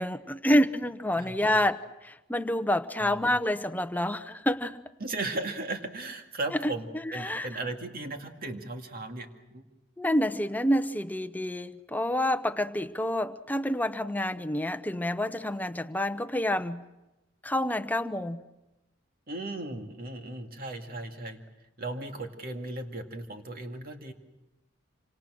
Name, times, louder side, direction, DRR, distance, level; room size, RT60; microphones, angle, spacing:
voice 1, 0.0-1.8 2.0-4.8 6.5-6.7 7.1-7.5 10.0-16.8 17.4-18.4, left 1 dB, 10° left, 10 dB, 0.8 m, -28 dB
voice 2, 1.1-1.6 3.0-3.2 5.0-9.6 19.3-21.4 21.8-24.1, right 2 dB, 50° right, 4 dB, 2.2 m, -36 dB
27.0 x 25.5 x 6.3 m, 1.0 s
head